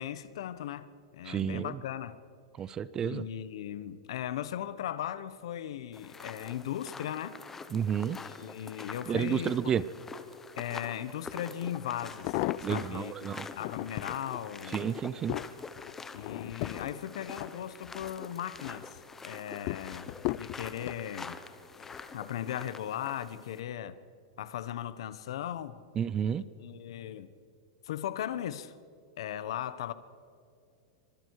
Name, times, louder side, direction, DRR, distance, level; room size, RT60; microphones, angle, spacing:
voice 1, 0.0-2.2 3.0-7.4 8.1-9.7 10.6-13.3 13.6-14.9 16.1-21.4 22.1-24.0 24.4-25.8 26.6-27.3 27.8-28.7 29.2-29.9, left 10 dB, 70° left, 1.2 m, -38 dB
voice 2, 1.3-1.8 2.6-3.3 7.7-8.2 9.1-9.8 12.6-13.5 14.7-15.4 26.0-26.4, right 8 dB, 20° right, 0.6 m, -31 dB
sound 1, 5.9-23.6, left 4 dB, 10° left, 1.0 m, -46 dB
sound 2, 11.3-11.4 12.0-13.0 13.5-14.2 14.7-18.2 18.5-19.0 19.7-21.0 21.8-22.2 22.5-22.6, left 18 dB, 45° left, 0.5 m, -37 dB
25.5 x 25.0 x 4.9 m
supercardioid pair, 155°, 3 cm